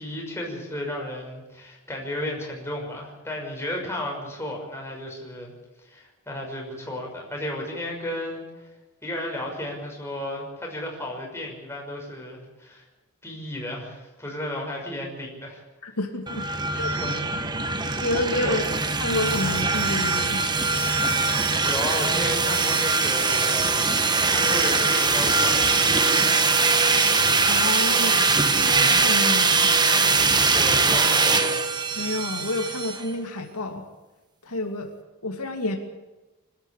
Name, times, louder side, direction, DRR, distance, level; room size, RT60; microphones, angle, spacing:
voice 1, 0.0-5.5 5.8-8.4 9.0-12.9 13.2-15.6 16.7-17.9 18.4-18.8 21.6-23.8 24.3-26.2 30.5-31.6, left 1 dB, 10° left, -1 dB, 6.1 m, -33 dB
voice 2, 15.8-16.4 16.7-16.9 18.0-18.6 19.0-20.4 27.5-28.1 28.5-29.7 32.0-33.8 34.4-34.9 35.2-35.8, left 2 dB, 90° left, 4 dB, 2.7 m, -29 dB
sound 1, 16.3-33.0, right 4 dB, 20° right, 1.3 m, -22 dB
25.5 x 13.0 x 8.4 m, 1.1 s
head